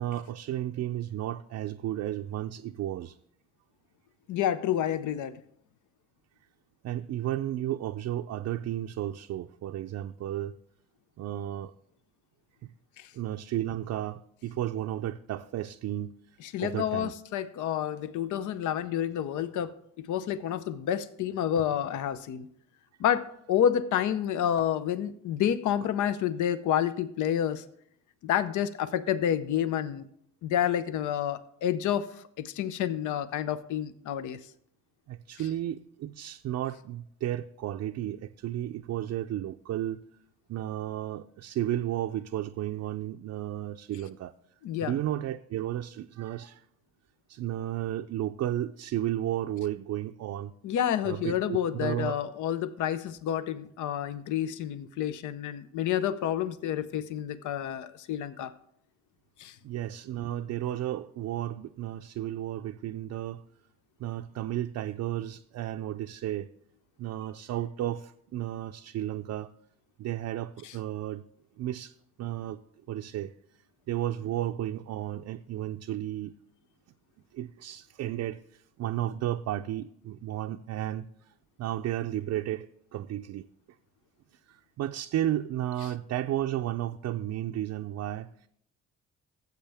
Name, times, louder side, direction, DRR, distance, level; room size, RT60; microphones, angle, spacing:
voice 1, 0.0-3.2 6.8-10.6 11.2-11.7 12.6-12.7 13.1-16.1 16.6-17.1 20.5-20.6 35.1-40.0 40.5-44.3 44.8-46.6 47.3-50.5 51.0-52.2 59.6-63.4 64.0-66.5 67.0-69.5 70.0-71.2 71.6-72.6 72.9-73.3 73.9-76.3 77.3-81.3 81.6-83.5 84.5-88.5, right 12 dB, 65° right, 0.5 m, -33 dB
voice 2, 4.3-5.4 13.0-13.1 16.4-22.5 23.0-27.6 28.2-30.0 30.4-34.4 44.6-44.9 50.6-58.5 59.4-59.6 70.6-70.7, left 10 dB, 75° left, 0.7 m, -29 dB
14.0 x 7.9 x 3.5 m
cardioid pair, 90°, 30 cm